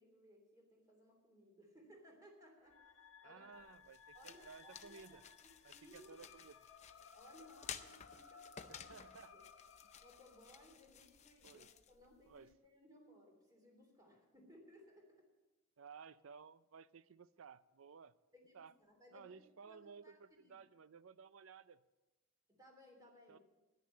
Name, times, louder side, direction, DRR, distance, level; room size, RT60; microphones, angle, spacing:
voice 1, 0.0-3.0 3.2-3.7 4.1-6.2 7.1-8.9 9.3-9.4 10.0-15.3 18.3-20.6 22.5-23.4, equal, 15° right, 1 dB, 3.0 m, -63 dB
sound 1, 2.6-10.8, left 6 dB, 75° left, 1.2 m, -61 dB
voice 2, 3.2-5.2 5.6-6.6 8.7-9.4 11.4-11.7 12.3-12.5 15.8-18.1 18.5-18.7 19.1-21.8 23.3-23.4, right 6 dB, 70° right, 16 dB, 0.5 m, -57 dB
sound 2, 3.5-12.5, left 8 dB, 30° left, 0.5 m, -55 dB
10.5 x 10.5 x 7.6 m, 1.1 s
head